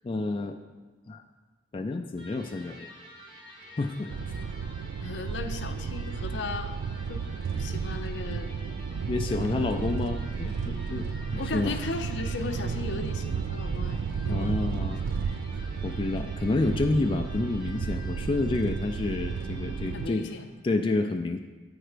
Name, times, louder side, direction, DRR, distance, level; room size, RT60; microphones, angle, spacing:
voice 1, 0.0-0.6 1.1-1.2 1.7-2.9 3.8-4.1 9.1-11.8 14.3-15.0 15.8-20.3 20.6-21.4, left 2 dB, 30° left, 5 dB, 0.3 m, -29 dB
Electric guitar, 2.1-20.5, equal, 25° right, 1.8 m, -50 dB
sound 1, 4.1-20.1, right 5 dB, 80° right, 0.3 m, -32 dB
voice 2, 5.0-6.7 7.1-7.2 7.5-8.5 9.3-9.6 11.4-14.6 15.0-15.2 19.9-20.5, left 3 dB, 70° left, 7 dB, 0.6 m, -36 dB
8.9 x 4.4 x 5.0 m, 1.3 s
head